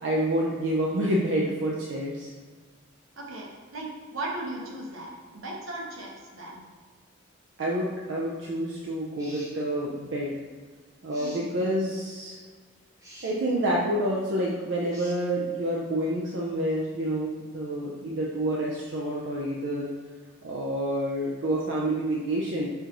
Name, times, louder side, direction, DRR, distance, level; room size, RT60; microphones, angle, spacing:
voice 1, 0.0-2.3 7.6-10.3 11.0-12.4 13.2-19.9 20.4-22.7, right 1 dB, 60° right, -4 dB, 0.4 m, -28 dB
voice 2, 3.2-6.6 11.2-11.6, right 2 dB, 85° right, -2 dB, 0.9 m, -37 dB
sound 1, 9.2-9.6 11.1-11.5 13.0-13.3 14.9-15.2, right 1 dB, 15° right, 0.8 m, -46 dB
5.5 x 2.5 x 2.8 m, 1.5 s
head